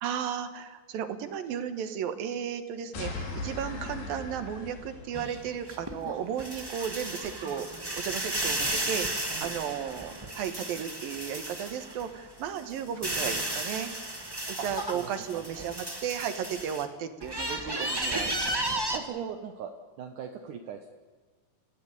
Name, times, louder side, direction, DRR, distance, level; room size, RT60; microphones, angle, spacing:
voice 1, 0.0-7.7 7.9-9.1 9.4-13.9 14.6-18.4, right 8 dB, 85° right, 9 dB, 3.3 m, -34 dB
sound 1, 2.9-5.5, left 3 dB, 85° left, 5.2 m, -38 dB
sound 2, 5.1-12.1 12.5-16.8 17.2-19.0, right 1 dB, 20° right, 0.6 m, -34 dB
voice 2, 14.9-15.7 18.9-19.7 20.0-20.9, right 7 dB, 70° right, 5 dB, 2.6 m, -39 dB
27.5 x 16.0 x 9.9 m, 1.4 s
omnidirectional pair, 4.0 m